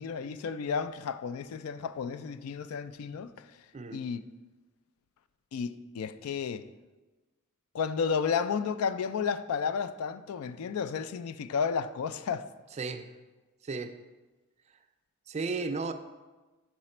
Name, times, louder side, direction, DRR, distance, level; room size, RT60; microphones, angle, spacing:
voice 1, 0.0-3.5 3.9-4.2 5.5-6.7 7.7-12.5, left 6 dB, 80° left, 0.3 m, -32 dB
voice 2, 12.8-13.1 13.6-14.0 15.3-15.9, right 4 dB, 30° right, 0.3 m, -34 dB
5.8 x 4.9 x 4.3 m
head